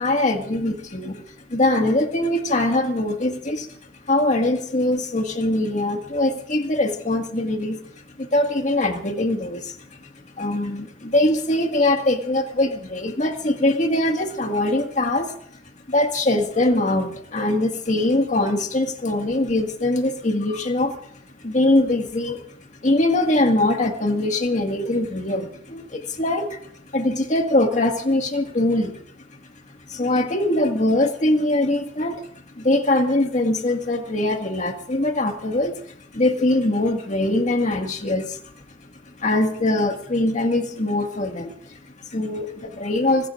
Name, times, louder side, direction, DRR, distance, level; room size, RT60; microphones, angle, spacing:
voice 1, 0.0-3.8 4.1-15.4 15.9-21.0 21.4-22.4 22.8-29.0 29.6-32.3 32.5-38.9 39.2-43.3, left 1 dB, 40° left, 4 dB, 1.8 m, -22 dB
25.0 x 21.0 x 2.5 m, 0.67 s
head